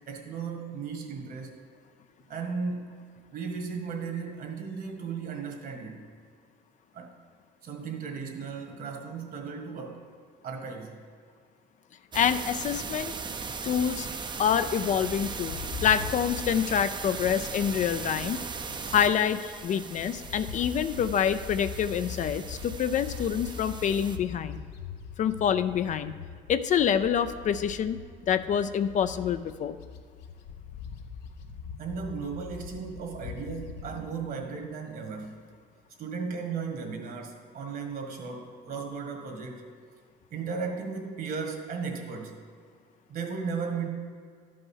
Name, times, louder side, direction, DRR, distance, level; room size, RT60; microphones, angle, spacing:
voice 1, 0.0-1.6 2.3-2.9 3.3-6.0 6.9-7.2 7.6-10.1 10.4-11.0 31.8-35.4 36.0-39.6 40.3-42.4 43.1-43.9, right 5 dB, 60° right, 3 dB, 1.7 m, -35 dB
voice 2, 12.1-13.2 13.6-14.1 14.4-18.4 18.9-24.6 25.2-26.1 26.5-28.0 28.3-29.8, left 8 dB, 45° left, 11 dB, 0.4 m, -26 dB
sound 1, 12.1-24.2, right 5 dB, 25° right, 0.6 m, -38 dB
Bird, 14.9-19.4 19.8-34.0, left 6 dB, 85° left, 0.8 m, -42 dB
12.0 x 5.4 x 5.6 m, 2.1 s
cardioid pair, 110°, 17 cm